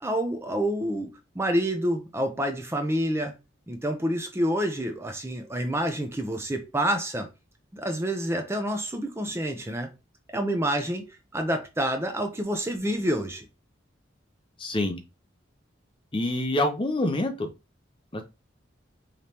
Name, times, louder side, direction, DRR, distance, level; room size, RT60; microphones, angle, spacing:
voice 1, 0.0-3.3 3.7-7.3 7.7-9.9 10.3-11.0 11.3-13.5, equal, 15° right, 0.6 m, -28 dB
voice 2, 14.6-15.0 16.1-17.5 18.1-18.2, left 1 dB, 25° left, 0.6 m, -26 dB
5.1 x 3.2 x 2.9 m
head